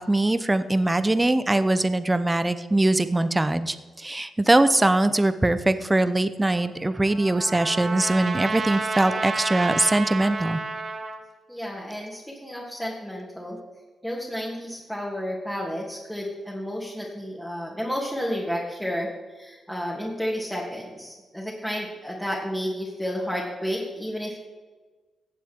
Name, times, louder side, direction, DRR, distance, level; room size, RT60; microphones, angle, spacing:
voice 1, 0.0-10.6, right 2 dB, 20° right, 12 dB, 0.9 m, -22 dB
Trumpet, 6.5-11.2, right 3 dB, 50° right, 2.2 m, -31 dB
voice 2, 11.5-13.6 14.0-24.4, equal, 5° left, -4 dB, 2.6 m, -31 dB
16.5 x 7.5 x 3.7 m, 1.3 s
hypercardioid pair, 40°, 0 cm